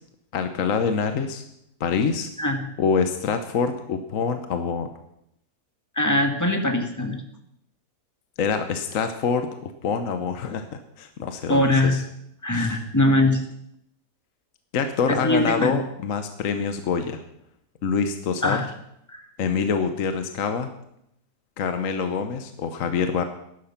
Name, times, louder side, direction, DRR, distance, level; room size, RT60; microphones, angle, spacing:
voice 1, 0.3-1.4 1.8-2.3 2.8-4.9 8.4-12.0 12.5-12.8 14.7-17.2 17.8-18.6 19.4-20.7 21.6-23.2, left 5 dB, 60° left, 8 dB, 1.2 m, -25 dB
voice 2, 6.0-7.1 11.5-12.0 12.4-13.4 15.1-15.8 18.4-18.7 19.1-19.2, left 1 dB, 10° left, 4 dB, 1.4 m, -21 dB
13.0 x 11.0 x 5.8 m, 0.77 s
omnidirectional pair, 1.7 m